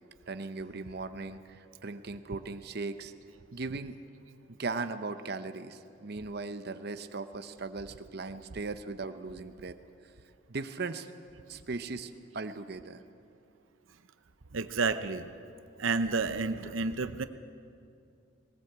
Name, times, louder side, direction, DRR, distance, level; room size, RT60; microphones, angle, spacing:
voice 1, 0.3-3.1 3.5-4.0 4.6-9.7 10.5-11.1 11.5-13.0, right 3 dB, 55° right, 10 dB, 0.8 m, -38 dB
voice 2, 14.5-15.3 15.8-17.2, right 4 dB, 85° right, 10 dB, 0.8 m, -30 dB
19.5 x 19.0 x 8.0 m, 2.5 s
head